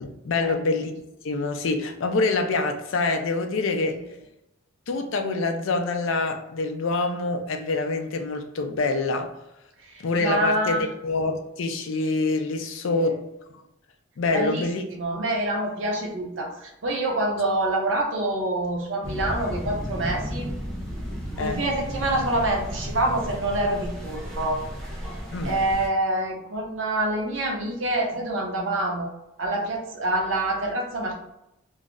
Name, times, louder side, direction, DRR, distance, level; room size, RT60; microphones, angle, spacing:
voice 1, 0.0-0.9 1.2-4.0 4.9-9.3 10.0-13.2 14.2-14.8 21.4-21.6 25.3-25.6, left 3 dB, 70° left, 6 dB, 0.4 m, -26 dB
voice 2, 9.9-10.9 12.8-13.2 14.3-14.7 14.9-20.5 21.4-24.6 25.4-29.1 29.4-31.1, right 1 dB, 65° right, 0 dB, 0.7 m, -26 dB
sound 1, 19.0-25.9, equal, ahead, 0.4 m, -33 dB
2.4 x 2.0 x 3.5 m, 0.85 s
head